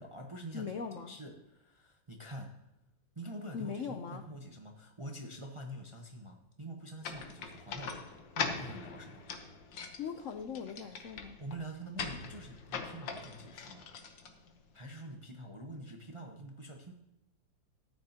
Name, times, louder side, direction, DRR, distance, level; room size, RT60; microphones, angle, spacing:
voice 1, 0.0-0.7 1.1-2.6 3.2-9.3 11.4-13.9 14.7-16.9, right 1 dB, 35° right, 2 dB, 0.5 m, -46 dB
voice 2, 0.5-1.2 3.5-4.2 9.8-11.4, left 6 dB, 90° left, 6 dB, 0.6 m, -40 dB
sound 1, 7.0-14.9, left 6 dB, 70° left, 1.7 m, -42 dB
13.5 x 9.8 x 2.9 m, 0.89 s
omnidirectional pair, 2.1 m